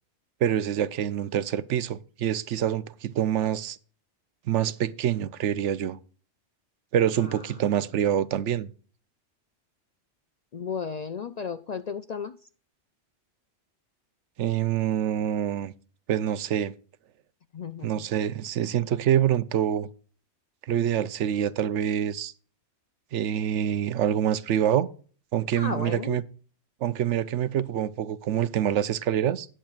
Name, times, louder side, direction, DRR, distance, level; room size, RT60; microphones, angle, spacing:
voice 1, 0.4-3.8 4.5-6.0 6.9-8.7 14.4-15.7 16.1-16.7 17.8-19.9 20.7-22.3 23.1-24.9 25.3-26.2 26.8-29.5, right 10 dB, 85° right, 1.0 m, -26 dB
voice 2, 10.5-12.4 17.5-18.0 25.6-26.2, left 6 dB, 55° left, 0.4 m, -34 dB
19.0 x 7.6 x 2.4 m
omnidirectional pair, 1.2 m